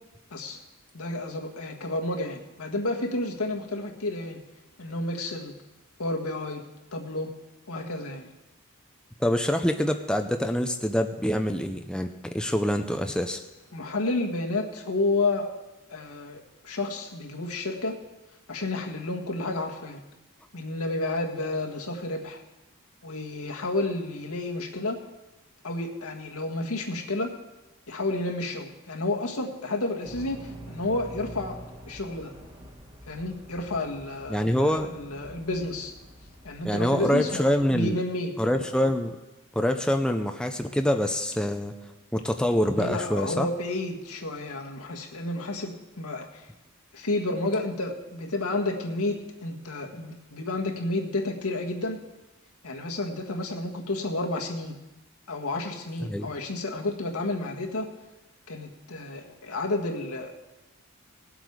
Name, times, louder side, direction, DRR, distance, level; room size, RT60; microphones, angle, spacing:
voice 1, 0.3-0.6 0.9-4.4 4.8-5.5 6.0-6.6 6.9-7.3 7.7-8.3 13.7-15.5 15.9-18.0 18.5-20.0 20.5-22.4 23.0-25.0 25.6-27.3 27.9-31.6 31.9-32.3 33.1-35.9 36.4-38.4 42.7-46.4 46.9-52.0 52.6-54.8 55.3-57.9 58.5-60.3, left 2 dB, 85° left, 1 dB, 1.7 m, -31 dB
voice 2, 9.2-13.4 34.3-34.9 36.6-38.0 38.4-39.2 39.6-41.7 42.1-43.5 56.0-56.3, equal, 5° left, 5 dB, 0.5 m, -25 dB
sound 1, 30.0-37.8, right 1 dB, 25° right, 1.7 m, -46 dB
18.5 x 7.9 x 4.8 m, 1.0 s
head